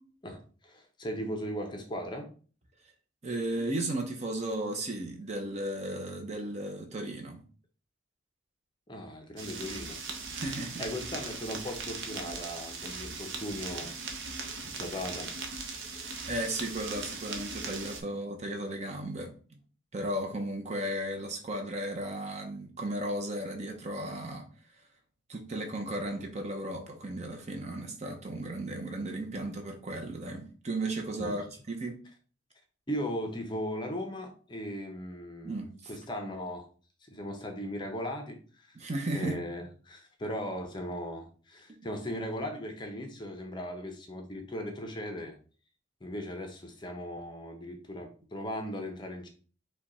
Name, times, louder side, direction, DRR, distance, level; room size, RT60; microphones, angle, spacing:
voice 1, 0.2-2.3 8.9-10.0 10.8-13.9 14.5-15.3 16.0-16.1 31.2-31.4 32.9-35.6 35.9-36.7 37.1-38.8 39.1-45.4 46.0-49.3, equal, 20° left, 4 dB, 0.6 m, -38 dB
voice 2, 3.2-7.4 10.3-10.8 16.3-19.3 19.9-24.5 25.3-31.9 35.4-35.9 38.7-39.4, right 1 dB, 35° right, 4 dB, 0.7 m, -35 dB
sound 1, 9.4-18.0, right 4 dB, 65° right, 0.8 m, -39 dB
5.0 x 2.3 x 4.1 m, 0.40 s
head